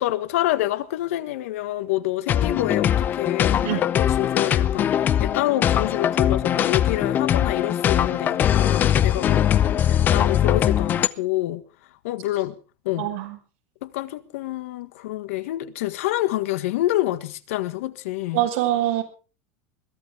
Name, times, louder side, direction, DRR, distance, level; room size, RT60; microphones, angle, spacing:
voice 1, 0.0-9.4 9.9-11.6 12.0-12.6 12.8-13.1 13.8-18.5, left 15 dB, 80° left, 1.5 m, -27 dB
sound 1, 2.3-11.1, left 10 dB, 25° left, 0.7 m, -21 dB
voice 2, 13.0-13.4 18.3-19.0, right 14 dB, 65° right, 5.3 m, -24 dB
22.0 x 15.5 x 3.5 m
supercardioid pair, 165°, 7 cm